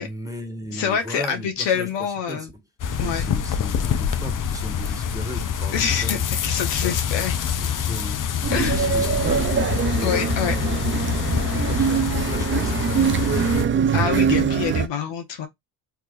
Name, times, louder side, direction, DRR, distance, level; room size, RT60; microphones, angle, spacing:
voice 1, 0.0-2.5 3.0-6.2 6.7-7.0 7.6-8.2 8.5-9.4 9.9-10.8 11.2-13.2, right 1 dB, 5° right, 1.5 m, -36 dB
voice 2, 0.7-2.5 3.0-3.3 5.7-7.3 8.5-8.8 10.0-10.5 13.9-15.5, left 7 dB, 65° left, 1.0 m, -26 dB
sound 1, 2.8-13.6, left 8 dB, 45° left, 0.8 m, -26 dB
sound 2, 8.4-14.9, right 7 dB, 25° right, 0.5 m, -23 dB
3.5 x 2.8 x 2.4 m
hypercardioid pair, 60°, 47 cm